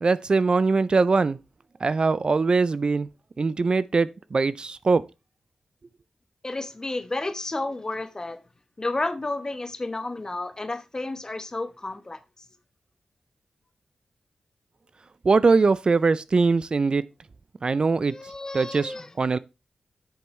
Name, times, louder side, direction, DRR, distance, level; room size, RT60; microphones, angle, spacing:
voice 1, 0.0-1.4 1.8-3.1 3.4-5.0 15.2-17.0 17.6-18.1 18.5-19.4, right 4 dB, 50° right, 0.4 m, -22 dB
voice 2, 6.4-8.4 8.8-12.2 18.1-19.1, left 2 dB, 30° left, 1.0 m, -31 dB
8.0 x 6.9 x 3.2 m
cardioid pair, 55°, 2 cm